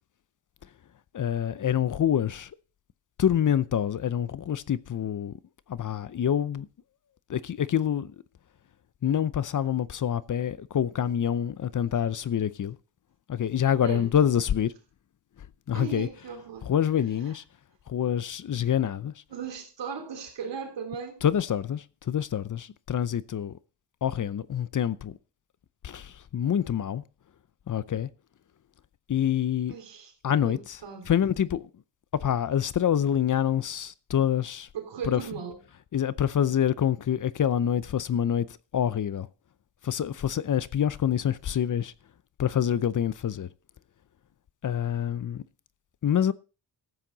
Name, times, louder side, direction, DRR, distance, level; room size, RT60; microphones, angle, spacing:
voice 1, 1.1-2.5 3.2-5.3 5.7-6.7 7.3-8.1 9.0-12.8 13.3-14.7 15.7-16.1 16.6-17.4 17.9-19.1 21.2-23.6 24.0-25.2 25.8-27.0 27.7-28.1 29.1-29.7 30.2-30.8 31.1-31.7 32.1-34.7 35.0-35.2 35.9-39.3 39.8-41.9 42.4-43.5 44.6-45.4 46.0-46.3, left 9 dB, 45° left, 0.6 m, -26 dB
voice 2, 15.7-16.7 19.3-21.2 29.7-30.1 30.4-31.1 34.7-35.6, right 6 dB, 90° right, 3.4 m, -37 dB
14.5 x 8.9 x 4.0 m
wide cardioid pair, 115°, 42 cm